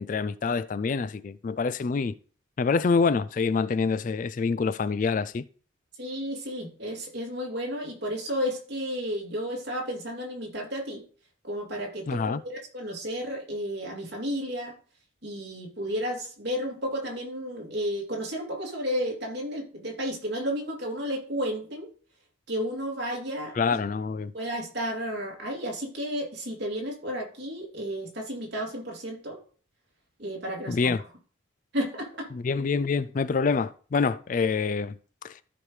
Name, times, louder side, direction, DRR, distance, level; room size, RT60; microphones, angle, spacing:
voice 1, 0.0-2.2 2.6-5.5 12.1-12.4 23.6-24.3 30.7-31.0 32.3-35.0 35.2-35.3, left 5 dB, 40° left, 0.3 m, -26 dB
voice 2, 6.0-11.0 11.4-14.7 15.2-21.9 22.5-23.8 24.3-29.4 30.2-30.9 31.7-32.3, equal, 55° right, 2.8 m, -32 dB
13.5 x 5.2 x 3.2 m
head